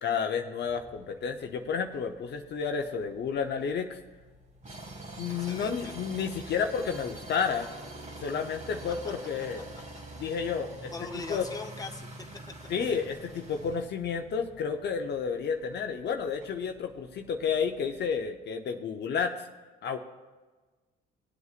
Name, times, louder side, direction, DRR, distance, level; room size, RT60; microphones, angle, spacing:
voice 1, 0.0-4.0 5.2-7.7 8.2-9.6 10.2-10.9 11.3-11.4 12.7-19.5 19.8-20.0, left 6 dB, 55° left, 5 dB, 0.8 m, -31 dB
sound 1, 0.6-18.3, right 2 dB, 35° right, 2.1 m, -47 dB
voice 2, 5.3-5.9 10.9-12.1, left 3 dB, 15° left, 3 dB, 1.1 m, -40 dB
19.0 x 8.1 x 2.5 m, 1.3 s
supercardioid pair, 70°, 21 cm